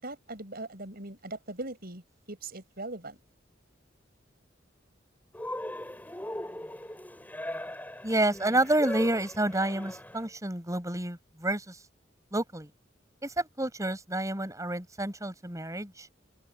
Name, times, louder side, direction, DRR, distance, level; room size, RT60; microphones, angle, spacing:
voice 1, 0.0-2.0 2.3-3.2, right 2 dB, 55° right, 7.0 m, -40 dB
Cheering, 5.3-10.3, left 1 dB, 10° left, 6.3 m, -39 dB
voice 2, 8.0-11.8 12.3-12.7 13.2-16.1, right 1 dB, 15° right, 5.2 m, -29 dB
open air
head